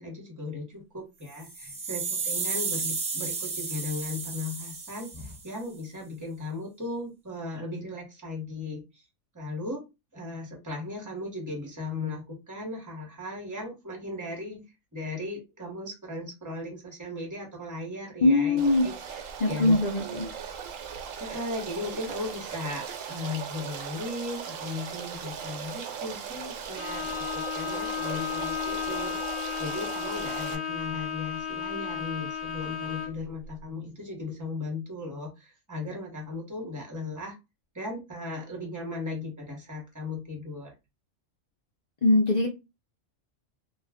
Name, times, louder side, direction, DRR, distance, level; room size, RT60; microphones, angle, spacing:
voice 1, 0.0-9.0 9.3-9.8 10.1-14.6 14.9-18.9 19.5-20.3 21.2-37.4 37.7-40.7, left 2 dB, 15° right, -1 dB, 0.9 m, -37 dB
sound 1, 1.3-5.5, right 4 dB, 40° right, 0.9 m, -33 dB
voice 2, 18.2-18.8 19.4-20.2 42.0-42.5, left 2 dB, 50° left, 1 dB, 0.5 m, -22 dB
Stream, 18.6-30.5, right 7 dB, 75° right, 1.0 m, -38 dB
Bowed string instrument, 26.8-33.3, left 7 dB, 80° left, 1.1 m, -33 dB
2.4 x 2.3 x 3.4 m, 0.25 s
omnidirectional pair, 1.4 m